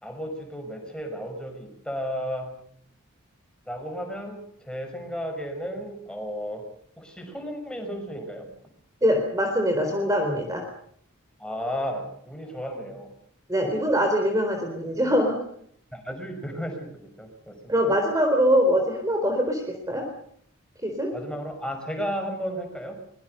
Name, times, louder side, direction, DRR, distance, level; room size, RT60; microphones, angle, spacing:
voice 1, 0.0-2.5 3.7-6.6 7.0-8.5 11.4-13.1 15.9-17.7 21.1-22.9, equal, 5° left, 4 dB, 6.1 m, -33 dB
voice 2, 9.0-10.6 13.5-15.4 17.7-20.1 20.8-21.1, equal, 15° right, 4 dB, 4.0 m, -23 dB
24.0 x 22.5 x 6.8 m, 0.64 s
head